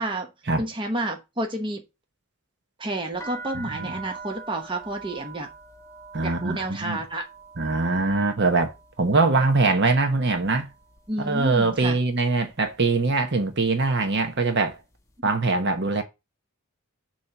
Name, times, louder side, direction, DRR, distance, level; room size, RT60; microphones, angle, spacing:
voice 1, 0.6-1.8 2.8-5.5 6.2-7.3 11.1-12.0, right 1 dB, 20° right, 1.0 m, -30 dB
sound 1, 3.1-11.1 11.3-12.0 12.6-12.9 13.2-14.6, right 4 dB, 15° left, 0.9 m, -44 dB
voice 2, 6.1-7.0 7.6-8.7 9.0-10.7 11.2-14.8 15.2-16.0, right 3 dB, 50° right, 1.1 m, -22 dB
7.0 x 3.1 x 5.8 m
head